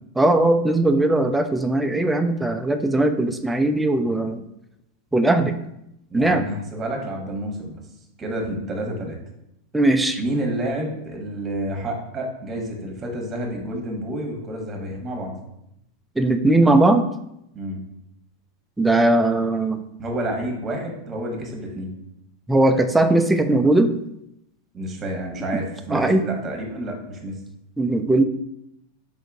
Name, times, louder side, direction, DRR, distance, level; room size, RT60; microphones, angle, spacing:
voice 1, 0.2-4.4 5.1-5.5 6.1-6.4 9.7-10.2 16.2-17.0 18.8-19.8 22.5-23.9 25.9-26.2 27.8-28.2, right 2 dB, 5° right, 7 dB, 0.4 m, -19 dB
voice 2, 6.1-7.8 8.2-9.2 10.2-15.3 17.5-17.8 20.0-21.9 24.7-27.3, right 1 dB, 25° right, 2 dB, 1.2 m, -29 dB
3.7 x 3.5 x 3.5 m, 0.81 s
hypercardioid pair, 100°, 0 cm